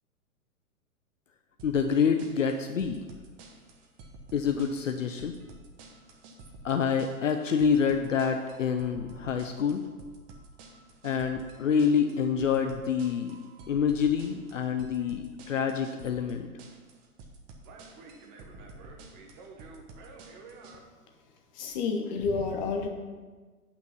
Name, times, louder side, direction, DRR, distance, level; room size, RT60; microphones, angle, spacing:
voice 1, 1.6-3.0 4.3-5.4 6.6-9.8 11.0-13.4 13.7-16.5, left 6 dB, 60° left, 6 dB, 0.7 m, -27 dB
sound 1, 1.6-20.8, right 3 dB, 25° right, 0.9 m, -50 dB
voice 2, 21.5-22.9, left 4 dB, 30° left, 3 dB, 1.2 m, -29 dB
8.9 x 5.7 x 5.8 m, 1.4 s
figure-of-eight pair, 115°, 44 cm